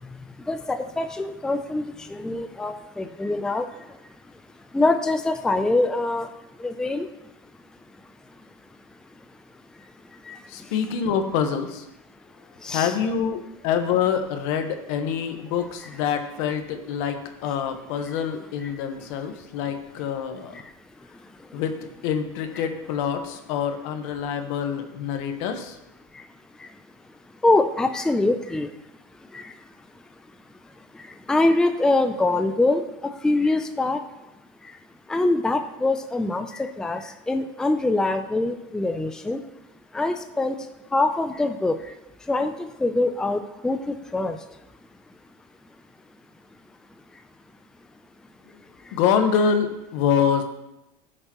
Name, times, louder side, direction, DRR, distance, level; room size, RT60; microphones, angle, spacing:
voice 1, 0.5-1.8 2.1-3.7 4.7-6.3 6.6-7.1 10.3-10.4 12.6-12.9 18.6-18.7 27.4-28.7 29.3-29.5 31.3-34.0 35.1-39.4 39.9-40.6 40.9-41.8 42.3-44.4, left 2 dB, 5° left, 7 dB, 0.4 m, -24 dB
voice 2, 10.5-11.8 12.7-20.5 21.5-21.8 22.0-25.8 48.9-50.4, left 7 dB, 75° left, 6 dB, 1.2 m, -26 dB
15.0 x 6.6 x 3.0 m, 0.94 s
cardioid pair, 150°, 16 cm